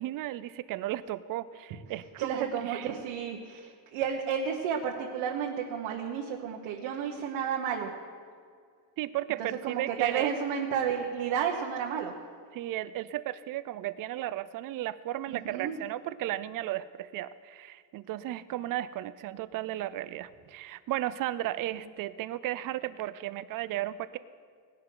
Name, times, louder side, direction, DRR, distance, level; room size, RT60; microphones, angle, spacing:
voice 1, 0.0-2.9 9.0-10.3 12.5-24.2, right 14 dB, 45° right, 16 dB, 0.5 m, -34 dB
voice 2, 1.9-7.9 9.6-12.2 15.3-15.7 21.7-21.8, right 7 dB, 70° right, 0 dB, 1.3 m, -32 dB
18.5 x 11.0 x 3.9 m, 2.1 s
cardioid pair, 145°, 50 cm